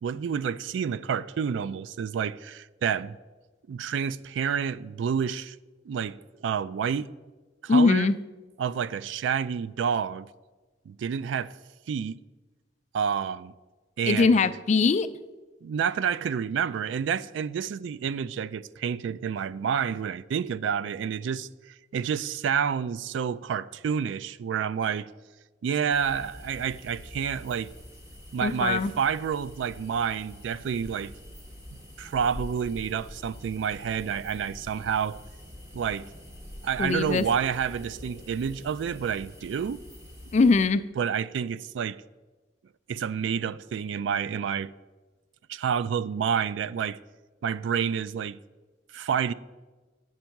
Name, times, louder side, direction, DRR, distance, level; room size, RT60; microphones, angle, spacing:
voice 1, 0.0-3.2 3.7-5.6 5.9-7.1 7.6-8.1 8.6-10.3 10.9-11.5 11.9-12.2 12.9-13.5 14.0-14.5 15.6-25.1 25.6-27.7 28.3-31.1 32.0-35.2 35.7-36.0 36.6-39.8 41.0-42.0 42.9-44.7 45.5-47.0 47.4-48.4 48.9-49.3, right 7 dB, 75° right, 0.3 m, -29 dB
voice 2, 7.7-8.2 14.1-15.1 28.4-28.9 36.8-37.2 40.3-40.8, left 4 dB, 40° left, 0.3 m, -21 dB
sound 1, 25.9-40.7, left 1 dB, 15° right, 1.2 m, -45 dB
9.2 x 5.3 x 5.8 m
head